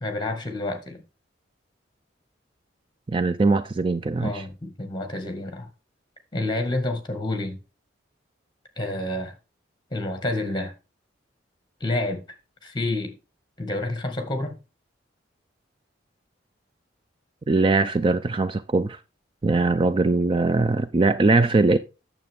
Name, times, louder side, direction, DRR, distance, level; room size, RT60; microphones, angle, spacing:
voice 1, 0.0-1.0 4.2-5.7 6.3-7.6 8.8-9.3 9.9-10.7 11.8-12.2 12.6-13.1 13.6-14.6, left 2 dB, 25° left, 1.7 m, -28 dB
voice 2, 3.1-4.4 17.5-19.0 19.4-21.8, right 3 dB, 25° right, 0.4 m, -21 dB
9.2 x 7.2 x 3.6 m
head